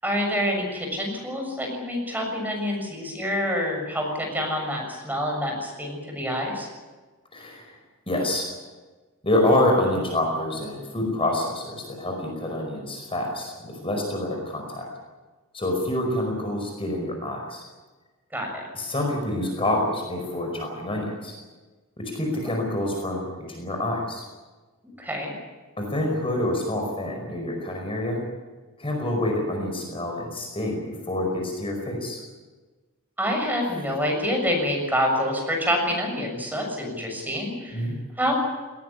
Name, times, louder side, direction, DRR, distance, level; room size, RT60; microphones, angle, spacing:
voice 1, 0.0-6.7 18.3-18.6 22.5-22.6 25.0-25.3 33.2-37.9 38.2-38.3, equal, 10° right, 1 dB, 6.8 m, -27 dB
voice 2, 7.3-7.8 8.1-8.6 9.2-14.9 15.5-17.7 18.7-21.4 22.0-24.2 25.8-28.2 28.8-32.2 37.7-38.0, left 1 dB, 25° left, 2 dB, 5.1 m, -27 dB
19.5 x 19.5 x 9.9 m, 1.3 s
head